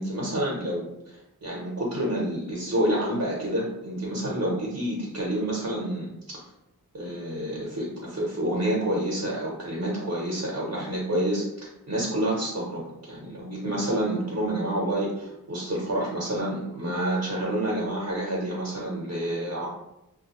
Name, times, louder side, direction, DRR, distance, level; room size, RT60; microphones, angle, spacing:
voice 1, 0.0-6.1 6.9-19.7, right 1 dB, 50° right, -5 dB, 0.7 m, -28 dB
2.4 x 2.2 x 2.9 m, 0.86 s
wide cardioid pair, 40°, 37 cm